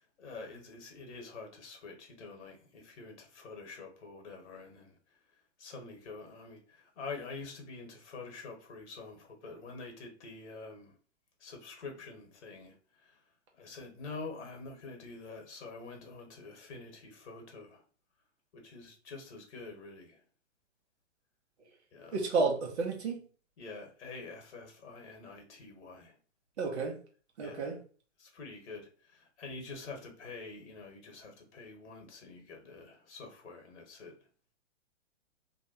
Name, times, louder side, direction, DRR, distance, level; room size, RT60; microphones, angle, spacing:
voice 1, 0.0-4.9 5.6-10.9 11.4-13.2 13.6-17.8 18.5-20.2 21.9-22.2 23.6-26.1 27.4-27.7 28.2-34.1, left 3 dB, 60° left, 1.0 m, -46 dB
voice 2, 22.1-23.2 26.6-26.9 27.4-27.8, right 4 dB, 60° right, 0.9 m, -31 dB
2.6 x 2.1 x 2.7 m
figure-of-eight pair, 115°, 37 cm